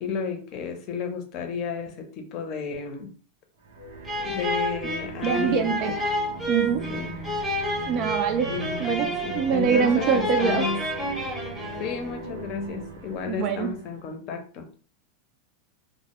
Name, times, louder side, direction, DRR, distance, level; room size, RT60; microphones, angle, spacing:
voice 1, 0.0-3.1 4.2-6.0 6.9-7.2 8.5-10.9 11.8-14.7, left 6 dB, 45° left, 0.6 m, -32 dB
sound 1, 3.6-14.1, right 2 dB, 85° right, 0.6 m, -39 dB
sound 2, 4.0-12.1, equal, 10° right, 0.7 m, -30 dB
voice 2, 5.2-5.9 6.5-6.9 7.9-8.5 8.8-10.7 13.3-13.7, right 7 dB, 45° right, 0.3 m, -24 dB
2.1 x 2.0 x 2.9 m
supercardioid pair, 125°, 0 cm